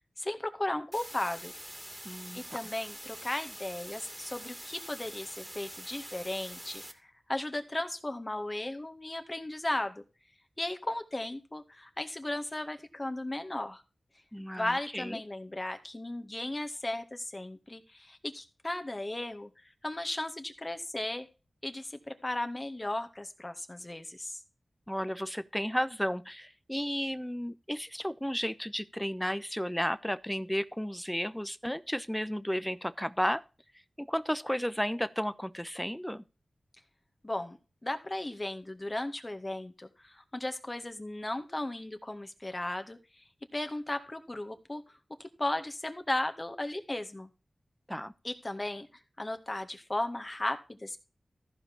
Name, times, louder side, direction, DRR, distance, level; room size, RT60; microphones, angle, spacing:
voice 1, 0.2-1.5 2.3-6.8 7.3-10.0 10.6-13.8 14.5-19.5 19.8-21.3 21.6-24.4 37.2-43.2 43.5-44.8 45.2-47.3 48.2-48.9 49.2-51.0, left 1 dB, 30° left, 2.0 m, -36 dB
sound 1, 0.9-6.9, equal, 10° right, 2.4 m, -45 dB
voice 2, 2.0-2.6 14.3-15.2 24.9-33.4 34.0-36.2 47.9-48.1, equal, 5° left, 1.0 m, -33 dB
14.5 x 5.1 x 6.3 m
wide cardioid pair, 60°, 0 cm